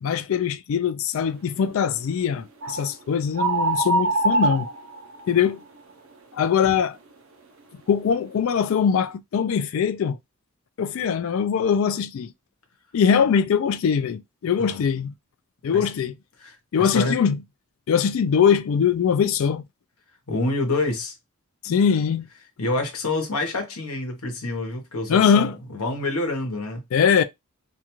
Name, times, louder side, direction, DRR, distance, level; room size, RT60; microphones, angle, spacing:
voice 1, 0.0-4.7 5.3-5.6 6.3-7.0 7.9-10.2 10.8-12.3 12.9-15.1 15.6-16.1 16.7-17.4 17.9-19.6 21.6-22.3 25.1-25.6 26.9-27.2, left 7 dB, 65° left, 0.3 m, -22 dB
sound 1, 2.6-2.9 3.4-5.4, right 2 dB, 65° right, 0.6 m, -23 dB
voice 2, 16.4-17.2 20.3-21.1 22.6-26.8, left 2 dB, 80° left, 1.0 m, -27 dB
2.5 x 2.3 x 2.9 m
head